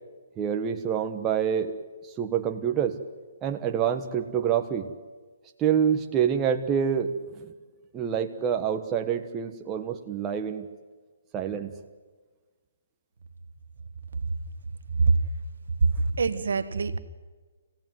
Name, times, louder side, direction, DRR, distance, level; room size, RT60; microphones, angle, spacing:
voice 1, 0.4-1.7 2.2-3.0 3.4-4.9 5.6-7.5 7.9-10.7 11.3-11.7, right 8 dB, 20° right, 4 dB, 1.3 m, -27 dB
voice 2, 15.8-17.0, right 4 dB, 75° right, 12 dB, 1.4 m, -23 dB
26.5 x 17.0 x 9.4 m, 1.4 s
hypercardioid pair, 155°, 0 cm